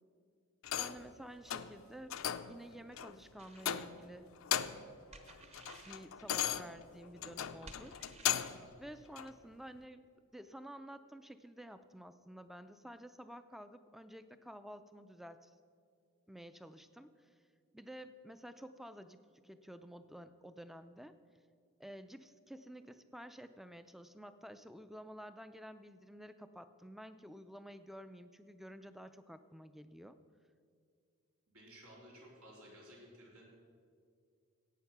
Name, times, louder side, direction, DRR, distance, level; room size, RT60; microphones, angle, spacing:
sound 1, 0.6-1.1 1.5-1.8 2.1-2.6 3.0-3.1 3.6-4.1 4.4-4.9 5.3-8.7 9.2-9.3, left 10 dB, 75° left, 0.5 m, -37 dB
voice 1, 0.8-2.2 2.4-4.3 5.8-8.0 8.8-10.1 10.3-15.5 16.3-17.3 17.7-21.1 21.8-30.2, equal, ahead, 11 dB, 0.4 m, -51 dB
sound 2, 3.4-3.7 5.1-6.0 7.6-8.6, right 2 dB, 30° right, 0.9 m, -55 dB
voice 2, 31.5-33.5, equal, 90° right, -3 dB, 3.9 m, -56 dB
16.0 x 8.7 x 5.9 m, 2.2 s
head